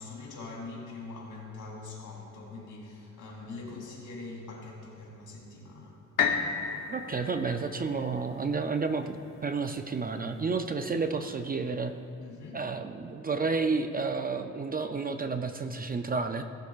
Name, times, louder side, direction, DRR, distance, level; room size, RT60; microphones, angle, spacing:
voice 1, 0.0-6.0 12.2-12.6, left 3 dB, 70° left, -3 dB, 2.9 m, -43 dB
sound 1, 6.2-10.1 10.7-10.8, left 6 dB, 90° left, 1.1 m, -33 dB
voice 2, 6.9-12.0 12.5-16.4, right 4 dB, 30° right, 7 dB, 0.4 m, -31 dB
19.0 x 11.5 x 2.4 m, 3.0 s
wide cardioid pair, 150°, 31 cm